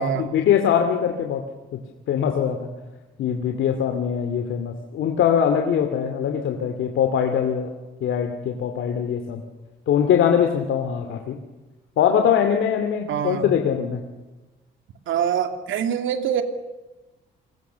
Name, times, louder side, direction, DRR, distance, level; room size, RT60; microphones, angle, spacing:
voice 1, 0.0-1.4 1.7-1.8 2.1-2.7 3.2-7.7 8.0-9.4 9.9-11.4 12.0-14.0, left 8 dB, 75° left, 5 dB, 2.4 m, -22 dB
voice 2, 13.1-13.5 15.1-16.4, right 9 dB, 80° right, 7 dB, 2.7 m, -24 dB
30.0 x 21.5 x 7.0 m, 1.1 s
cardioid pair, 90°, 20 cm